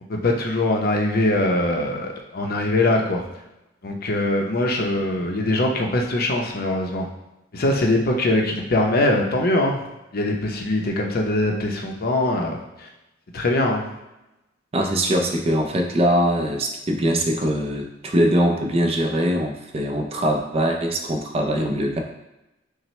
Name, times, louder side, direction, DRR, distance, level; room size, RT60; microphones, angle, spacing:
voice 1, 0.1-3.2 3.8-7.1 7.5-9.8 10.1-12.9 13.3-13.8, left 1 dB, 55° left, 1 dB, 0.6 m, -22 dB
voice 2, 14.7-22.0, equal, 30° right, 2 dB, 0.5 m, -22 dB
5.7 x 2.1 x 3.1 m, 0.95 s
head